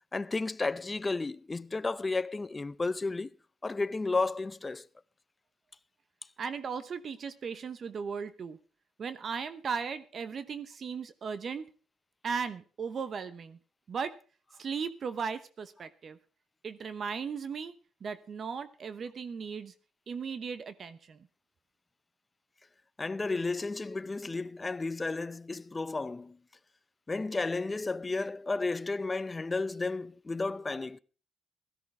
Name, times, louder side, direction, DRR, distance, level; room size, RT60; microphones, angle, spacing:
voice 1, 0.1-3.3 3.6-4.8 23.0-26.4 27.1-31.0, left 3 dB, 25° left, 0.6 m, -32 dB
voice 2, 6.4-8.6 9.0-11.7 12.2-13.6 13.9-14.2 14.6-16.2 16.6-17.7 18.0-19.7 20.1-21.2, right 6 dB, 50° right, 0.9 m, -37 dB
16.5 x 13.0 x 3.5 m
cardioid pair, 90°, 0 cm